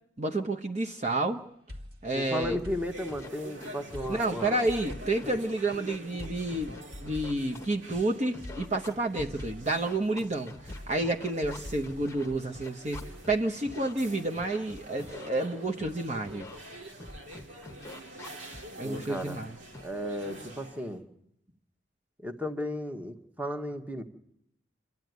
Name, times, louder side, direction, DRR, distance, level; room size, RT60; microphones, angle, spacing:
voice 1, 0.2-1.4 2.0-2.6 4.1-6.7 7.0-10.5 10.9-16.5 18.8-19.5, right 2 dB, 35° right, 3 dB, 0.9 m, -30 dB
sound 1, 1.7-3.5 3.9-5.4 6.2-8.0 8.4-9.9 10.7-12.5 12.9-13.3, left 1 dB, 55° right, 2.0 m, -45 dB
voice 2, 2.1-4.6 18.8-19.4 19.8-21.1 22.2-24.0, left 1 dB, 10° right, 6 dB, 1.2 m, -35 dB
Scratching (performance technique), 2.5-2.6 3.1-3.3 3.6-4.1 4.4-5.4 5.7-8.0 8.3-13.4 13.7-13.9 14.4-15.3 15.8-15.9 16.2-16.6 17.0-18.6 18.9-19.2 19.7-19.9, left 2 dB, 15° left, 1.0 m, -45 dB
sound 2, 2.5-21.0, right 1 dB, 90° right, 2.4 m, -47 dB
27.5 x 12.0 x 9.3 m, 0.80 s
head